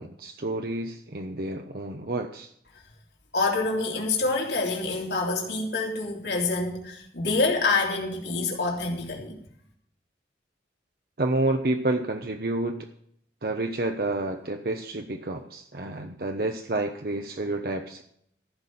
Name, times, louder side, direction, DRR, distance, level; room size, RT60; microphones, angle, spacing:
voice 1, 0.0-2.5 11.2-12.9 13.4-18.0, right 2 dB, 55° right, 0.9 m, -29 dB
voice 2, 3.3-9.4, left 3 dB, 75° left, 3.2 m, -26 dB
14.5 x 6.1 x 8.4 m
head